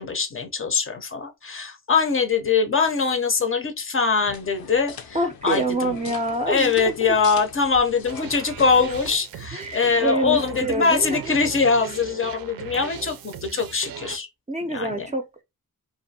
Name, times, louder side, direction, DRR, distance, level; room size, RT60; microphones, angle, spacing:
voice 1, 0.0-6.1 6.5-14.3 14.7-15.1, left 5 dB, 40° left, 0.6 m, -23 dB
sound 1, 4.2-9.2, left 7 dB, 85° left, 0.6 m, -41 dB
voice 2, 5.1-6.9 9.5-11.2 14.5-15.4, right 1 dB, 20° right, 0.5 m, -26 dB
sound 2, 8.0-14.2, right 8 dB, 80° right, 0.5 m, -38 dB
2.5 x 2.5 x 2.7 m
wide cardioid pair, 110°, 35 cm